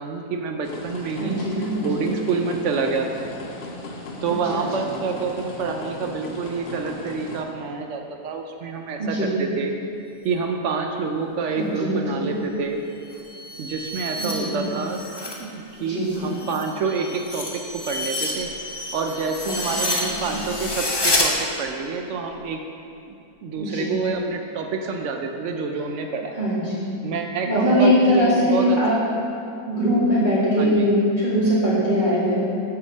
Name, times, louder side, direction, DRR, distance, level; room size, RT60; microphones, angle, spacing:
voice 1, 0.0-1.4 1.8-3.3 4.2-9.7 10.2-12.8 13.6-15.0 15.4-18.5 18.9-22.6 23.0-23.1 23.4-26.4 27.0-28.8 30.6-30.9, right 4 dB, 65° right, 4 dB, 0.8 m, -27 dB
sound 1, 0.6-7.4, left 2 dB, 85° left, 1.4 m, -37 dB
voice 2, 1.2-2.2 4.3-4.6 9.0-9.4 11.6-12.3 14.1-14.6 15.8-16.4 19.7-20.4 23.6-24.0 26.4-26.9 27.5-29.1 29.7-32.4, equal, 30° right, -11 dB, 1.6 m, -22 dB
sound 2, 13.0-15.4 15.8-21.3, left 1 dB, 25° left, 0.5 m, -29 dB
5.8 x 5.0 x 6.5 m, 2.7 s
omnidirectional pair, 1.6 m